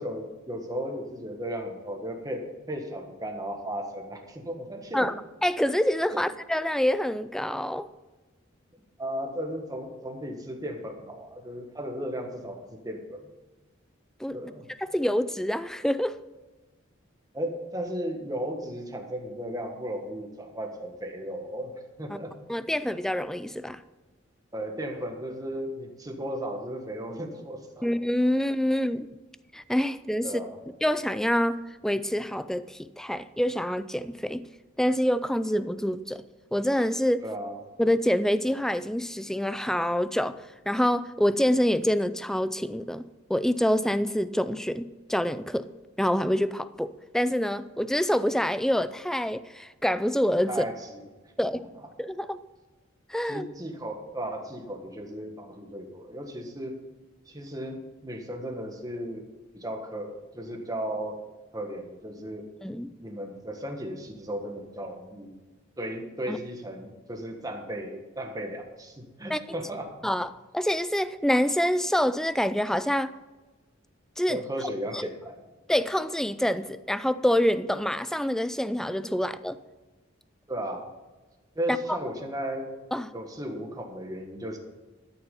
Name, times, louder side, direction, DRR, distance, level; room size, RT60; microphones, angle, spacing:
voice 1, 0.0-5.1 9.0-13.3 14.3-14.7 17.3-22.3 24.5-27.9 30.2-30.6 37.2-37.6 50.5-51.0 51.6-51.7 53.2-56.8 57.3-59.2 59.5-61.2 61.5-62.5 63.0-65.3 65.8-69.9 74.3-75.4 80.5-80.8 81.5-82.7 83.1-84.6, equal, 20° right, 1.6 m, -35 dB
voice 2, 5.4-7.9 14.2-14.4 14.8-16.2 22.5-23.8 27.8-29.1 29.5-30.3 30.8-34.4 34.8-36.2 36.5-37.2 37.8-40.4 40.7-43.0 43.3-45.7 46.0-50.7 51.4-51.6 52.0-52.4 53.1-53.5 62.6-62.9 66.3-66.4 69.3-69.4 70.0-70.3 70.5-73.1 74.2-74.4 74.9-75.1 75.7-79.6 81.7-81.8 82.9-83.1, equal, 5° left, 0.4 m, -26 dB
13.0 x 7.0 x 5.5 m
head